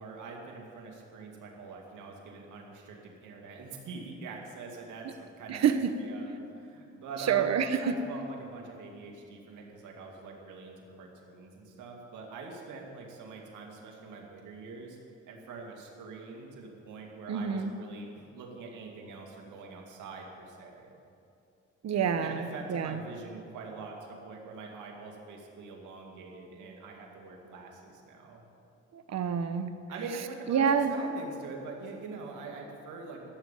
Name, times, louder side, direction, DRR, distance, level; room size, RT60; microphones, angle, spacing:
voice 1, 0.0-15.0 15.3-20.9 22.2-28.5 29.9-33.3, right 4 dB, 80° right, 0 dB, 2.4 m, -44 dB
voice 2, 5.5-5.9 7.2-7.9 17.3-17.7 21.8-23.0 28.9-29.7 30.5-30.9, right 7 dB, 60° right, 9 dB, 1.1 m, -27 dB
14.5 x 7.0 x 9.1 m, 2.7 s
cardioid pair, 90°, 30 cm